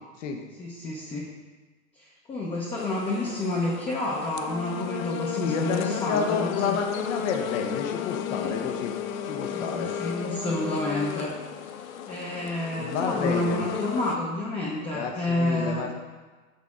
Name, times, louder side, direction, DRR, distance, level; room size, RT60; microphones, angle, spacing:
voice 1, 0.6-1.3 2.0-6.8 8.3-8.7 9.5-11.3 11.8-15.9, left 1 dB, 15° left, -4 dB, 0.7 m, -29 dB
sound 1, 2.8-14.2, left 9 dB, 85° left, 0.5 m, -34 dB
voice 2, 5.4-8.9 9.2-9.9 12.8-13.6 14.9-15.9, left 6 dB, 65° left, 4 dB, 0.9 m, -30 dB
6.5 x 3.5 x 4.8 m, 1.3 s
hypercardioid pair, 125°, 41 cm